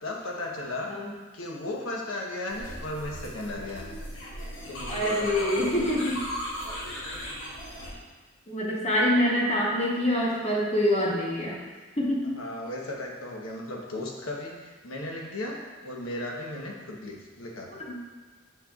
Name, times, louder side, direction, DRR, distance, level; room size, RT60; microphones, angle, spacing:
voice 1, 0.0-0.9 1.3-4.0 4.7-5.7 12.3-17.8, left 1 dB, 85° left, -1 dB, 1.0 m, -36 dB
sound 1, 2.5-7.9, equal, 65° left, 1.1 m, -37 dB
voice 2, 4.9-6.2 8.5-11.6 12.0-12.4 17.7-18.0, equal, 30° left, -3 dB, 1.0 m, -26 dB
6.5 x 6.4 x 2.4 m, 1.4 s
head